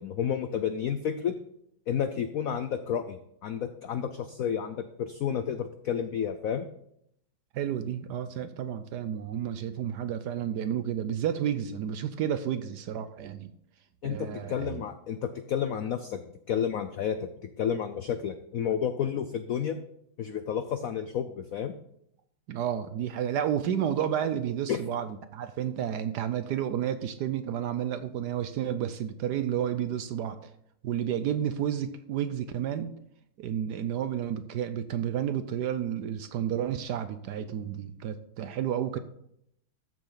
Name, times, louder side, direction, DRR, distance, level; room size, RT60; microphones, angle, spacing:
voice 1, 0.0-1.3 1.9-6.7 14.0-19.8 20.2-21.7 24.7-24.8, left 8 dB, 85° left, 10 dB, 0.7 m, -31 dB
voice 2, 7.5-13.5 14.0-14.8 22.5-30.5 30.8-32.9 33.4-39.0, right 9 dB, 70° right, 11 dB, 1.0 m, -31 dB
13.5 x 7.5 x 3.9 m, 0.74 s
omnidirectional pair, 2.2 m